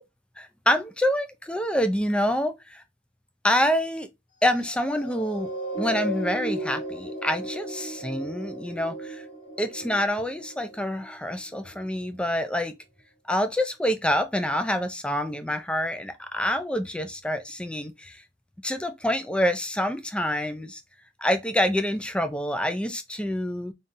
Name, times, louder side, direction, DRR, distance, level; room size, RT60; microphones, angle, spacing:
voice 1, 0.4-2.8 3.4-4.1 4.4-5.5 5.8-9.2 9.6-12.8 13.3-18.2 18.6-20.8 21.2-23.7, equal, 5° left, 0.5 m, -27 dB
sound 1, 4.4-11.1 11.7-11.9, right 1 dB, 45° left, 1.9 m, -35 dB
3.7 x 3.7 x 2.6 m
head